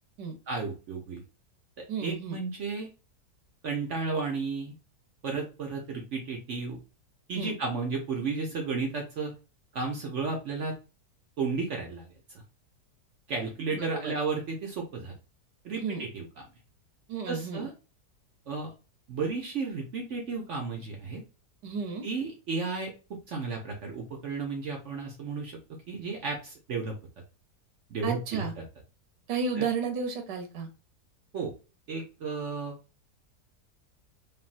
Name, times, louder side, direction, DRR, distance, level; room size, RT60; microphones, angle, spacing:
voice 1, 0.5-1.2 2.0-2.9 3.6-4.7 5.2-6.8 7.3-9.3 9.7-10.7 11.4-12.1 13.3-15.1 15.6-16.4 17.2-17.7 18.5-18.7 19.1-21.2 22.0-25.6 25.9-26.9 27.9-28.5 29.6-29.7 31.3-31.5 31.9-32.7, right 4 dB, 60° right, 1 dB, 0.8 m, -33 dB
voice 2, 1.9-2.4 7.4-7.5 13.7-14.1 15.7-16.0 17.1-17.7 21.6-22.0 28.0-28.5 29.3-30.7, right 5 dB, 80° right, 5 dB, 1.3 m, -32 dB
3.3 x 2.5 x 2.5 m, 0.32 s
omnidirectional pair, 1.8 m